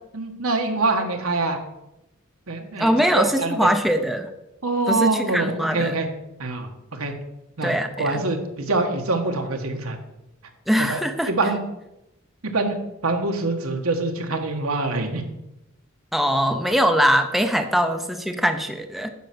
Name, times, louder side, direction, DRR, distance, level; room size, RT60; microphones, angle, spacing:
voice 1, 0.1-1.6 2.5-3.7 4.6-6.1 6.4-7.1 7.6-10.0 10.8-11.0 11.3-11.6 12.4-12.8 13.0-15.2, right 3 dB, 85° right, 4 dB, 1.5 m, -25 dB
voice 2, 2.8-4.3 4.9-5.9 7.6-8.1 10.7-11.3 16.1-19.1, equal, ahead, 6 dB, 0.6 m, -22 dB
10.0 x 6.3 x 6.0 m, 0.92 s
head